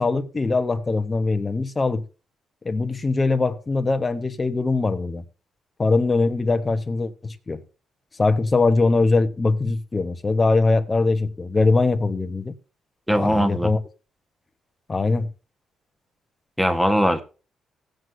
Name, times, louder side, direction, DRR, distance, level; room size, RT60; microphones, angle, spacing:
voice 1, 0.0-2.0 2.6-5.2 5.8-7.6 8.2-12.5 13.1-13.8 14.9-15.3, left 3 dB, 25° left, 1.1 m, -22 dB
voice 2, 13.1-13.7 16.6-17.2, equal, ahead, 1.4 m, -20 dB
17.0 x 7.9 x 2.7 m
cardioid pair, 90°, 0 cm